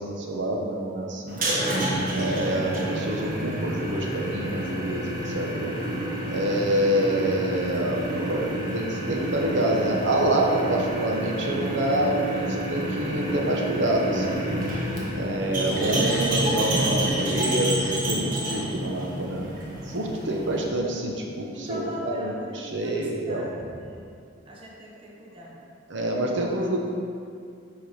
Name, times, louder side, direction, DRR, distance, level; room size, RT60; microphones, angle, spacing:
voice 1, 0.0-1.4 2.1-5.7 6.2-14.4 15.1-19.5 19.9-23.5 25.9-26.8, right 1 dB, 65° right, 0 dB, 0.9 m, -27 dB
sound 1, 1.3-20.7, right 1 dB, 45° right, 1.2 m, -29 dB
voice 2, 21.5-24.1 24.5-25.7, equal, 25° right, -3 dB, 0.8 m, -40 dB
6.6 x 5.1 x 5.6 m, 2.3 s
head